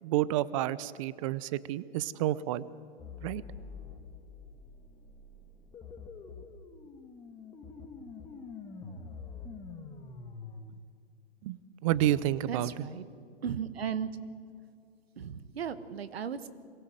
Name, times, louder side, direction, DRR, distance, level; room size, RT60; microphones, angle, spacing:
voice 1, 0.0-2.6 3.2-3.4 11.4-12.7, right 13 dB, 30° right, 19 dB, 0.6 m, -30 dB
sound 1, 3.0-10.6, left 5 dB, 15° left, 1.7 m, -46 dB
voice 2, 12.5-13.0 13.4-14.1 15.2-16.5, right 7 dB, 65° right, 13 dB, 1.5 m, -36 dB
23.0 x 16.5 x 7.9 m, 2.3 s
hypercardioid pair, 135°, 32 cm